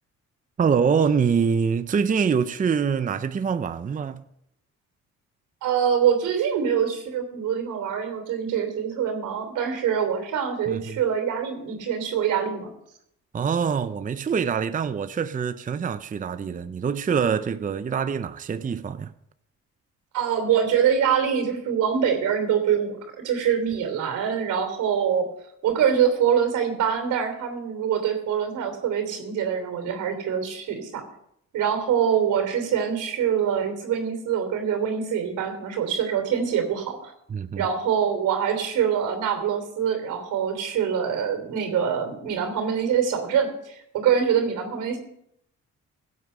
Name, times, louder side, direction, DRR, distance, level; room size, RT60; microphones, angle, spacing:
voice 1, 0.6-4.2 10.7-11.0 13.3-19.1 37.3-37.7, right 6 dB, 25° right, 0.6 m, -25 dB
voice 2, 5.6-12.7 20.1-23.0 23.2-25.2 25.6-31.0 31.5-37.1 37.6-45.0, right 8 dB, 85° right, 3.1 m, -24 dB
16.0 x 8.1 x 5.5 m
cardioid pair, 90°, 30 cm